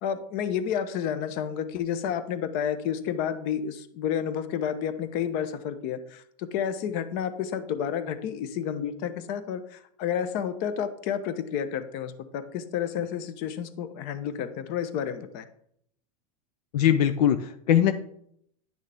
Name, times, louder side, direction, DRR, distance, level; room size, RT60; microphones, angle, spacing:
voice 1, 0.0-15.5, left 8 dB, 50° left, 11 dB, 1.0 m, -30 dB
voice 2, 16.7-18.0, left 10 dB, 80° left, 9 dB, 0.7 m, -21 dB
10.5 x 6.3 x 3.5 m, 0.68 s
supercardioid pair, 135°, 20 cm